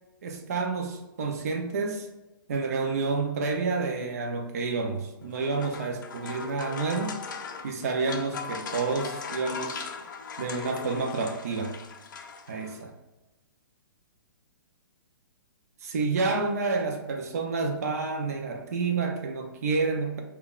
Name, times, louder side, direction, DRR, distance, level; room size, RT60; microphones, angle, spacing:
voice 1, 0.2-2.1 2.5-9.8 10.4-11.8 12.5-12.9 15.8-20.2, right 4 dB, 45° right, 0.4 m, -29 dB
sound 1, 5.2-12.8, left 5 dB, 55° left, 0.4 m, -39 dB
5.3 x 2.2 x 2.3 m
hypercardioid pair, 180°, 12 cm